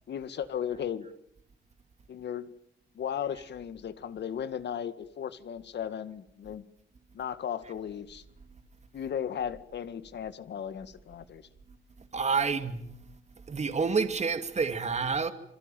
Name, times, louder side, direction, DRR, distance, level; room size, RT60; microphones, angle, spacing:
voice 1, 0.1-1.1 2.1-2.5 3.0-6.7 7.1-8.2 8.9-11.4, left 8 dB, 60° left, 2.0 m, -36 dB
voice 2, 12.1-12.8 13.5-15.3, right 5 dB, 35° right, 2.6 m, -28 dB
28.0 x 22.5 x 9.2 m
cardioid pair, 90°, 20 cm